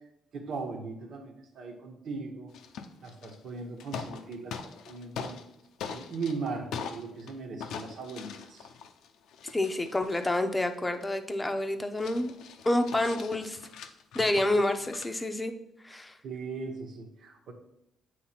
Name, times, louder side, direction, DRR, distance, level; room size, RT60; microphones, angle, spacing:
voice 1, 0.3-2.5 3.0-5.4 5.9-8.7 16.2-17.5, right 4 dB, 65° right, 3 dB, 1.4 m, -38 dB
sound 1, 2.5-3.5 3.8-5.5 5.8-7.3 7.6-11.1 11.6-11.7 11.9-15.1, left 6 dB, 85° left, 0.7 m, -42 dB
voice 2, 9.5-12.3 12.7-13.6 14.1-15.5 15.8-16.1, left 1 dB, 15° left, 7 dB, 0.8 m, -28 dB
7.9 x 3.4 x 5.8 m, 0.80 s
cardioid pair, 90°, 0 cm